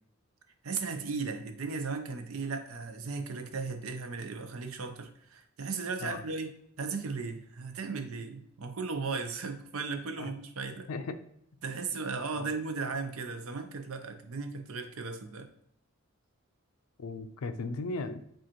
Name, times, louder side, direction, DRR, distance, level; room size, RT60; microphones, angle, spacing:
voice 1, 0.6-6.5 6.8-10.9 11.6-15.5, right 4 dB, 75° right, 6 dB, 0.6 m, -36 dB
voice 2, 10.7-11.2 12.4-12.5 17.0-18.3, left 3 dB, 85° left, 10 dB, 0.5 m, -37 dB
7.4 x 2.5 x 2.9 m, 0.73 s
head